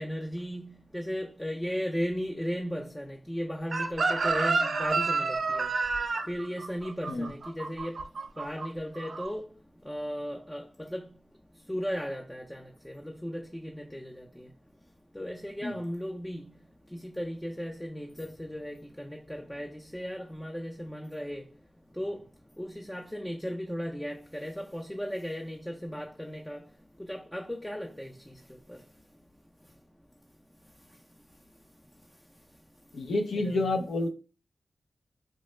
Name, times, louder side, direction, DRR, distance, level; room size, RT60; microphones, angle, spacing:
voice 1, 0.0-5.7 6.3-8.0 8.4-9.4 9.8-11.1 11.7-14.5 15.1-16.5 16.9-21.4 22.0-22.2 22.6-26.6 27.1-28.4 28.7-28.8 33.3-33.7, equal, 10° left, 0.4 m, -36 dB
Chicken rooster, 3.7-8.7 9.0-9.3, right 3 dB, 70° right, 0.3 m, -29 dB
voice 2, 32.9-34.1, left 2 dB, 80° left, 0.4 m, -29 dB
3.1 x 2.0 x 3.1 m
cardioid pair, 50°, 0 cm